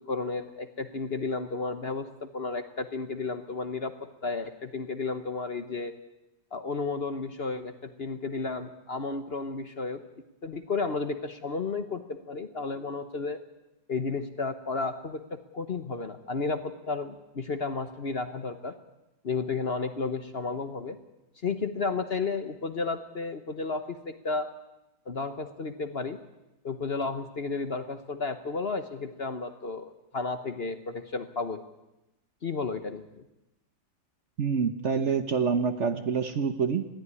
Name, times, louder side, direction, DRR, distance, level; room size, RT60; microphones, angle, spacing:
voice 1, 0.1-3.9 4.2-5.9 6.5-10.0 10.4-12.0 12.3-13.4 13.9-18.7 19.2-21.0 21.4-24.5 25.1-26.2 26.6-31.6 32.4-33.0, left 4 dB, 40° left, 9 dB, 1.1 m, -32 dB
voice 2, 34.4-36.8, right 6 dB, 50° right, 9 dB, 1.2 m, -26 dB
21.0 x 14.5 x 9.7 m, 0.94 s
omnidirectional pair, 1.8 m